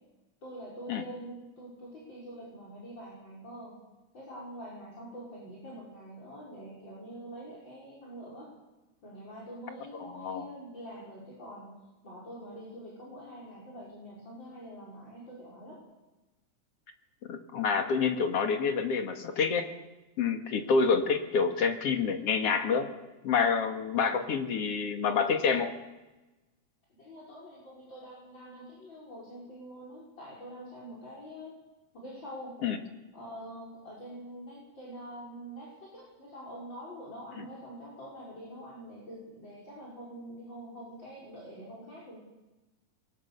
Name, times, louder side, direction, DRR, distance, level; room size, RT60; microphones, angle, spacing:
voice 1, 0.4-3.8 4.1-8.5 9.0-11.8 12.0-15.8 26.9-31.6 31.9-32.6 33.1-42.2, equal, 35° left, -5 dB, 6.1 m, -45 dB
voice 2, 10.0-10.5 17.3-19.7 20.2-22.9 23.2-25.7 32.6-32.8 37.4-37.5, left 5 dB, 55° left, 5 dB, 2.7 m, -28 dB
27.5 x 22.5 x 6.9 m, 1.1 s
omnidirectional pair, 3.6 m